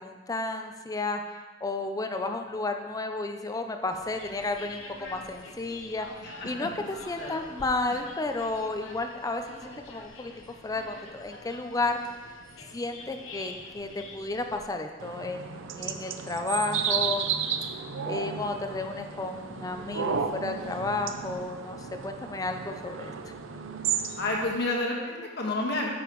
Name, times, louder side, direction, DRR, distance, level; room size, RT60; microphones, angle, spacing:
voice 1, 0.0-10.3 10.6-12.0 12.7-17.2 18.0-23.3, left 2 dB, 20° left, 6 dB, 0.4 m, -32 dB
sound 1, 3.9-14.7, left 2 dB, 85° left, 0.9 m, -46 dB
voice 2, 6.2-6.7 7.2-7.4 7.9-8.0 24.2-25.9, left 2 dB, 60° left, -1 dB, 1.5 m, -30 dB
sound 2, 15.0-24.6, right 7 dB, 80° right, 0.5 m, -33 dB
9.8 x 7.0 x 3.1 m, 1.4 s
head